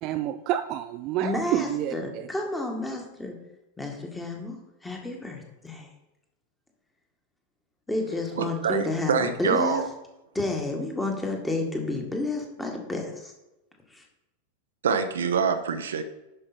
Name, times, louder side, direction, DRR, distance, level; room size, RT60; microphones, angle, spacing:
voice 1, 0.0-2.3, right 13 dB, 40° right, 9 dB, 0.4 m, -29 dB
voice 2, 1.2-3.3 3.8-4.6 4.8-5.9 7.9-9.8 10.3-13.3 13.9-14.0, left 2 dB, 10° left, 2 dB, 1.9 m, -30 dB
voice 3, 8.4-9.9 14.8-16.0, right 6 dB, 65° right, 8 dB, 0.8 m, -25 dB
11.0 x 5.4 x 4.4 m, 0.96 s
figure-of-eight pair, 90°, 0 cm